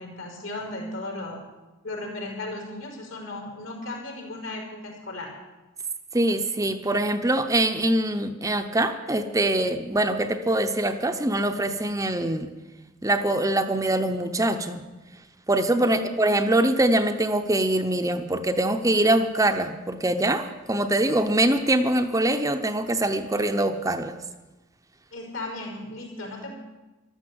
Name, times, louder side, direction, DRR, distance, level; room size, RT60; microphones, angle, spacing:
voice 1, 0.0-1.4 1.8-5.3 15.9-16.1 25.1-26.5, left 2 dB, 75° left, 0 dB, 5.1 m, -36 dB
voice 2, 6.1-12.5 13.0-14.8 15.5-24.1, right 1 dB, 15° right, 7 dB, 0.7 m, -23 dB
14.0 x 12.5 x 7.8 m, 1.1 s
head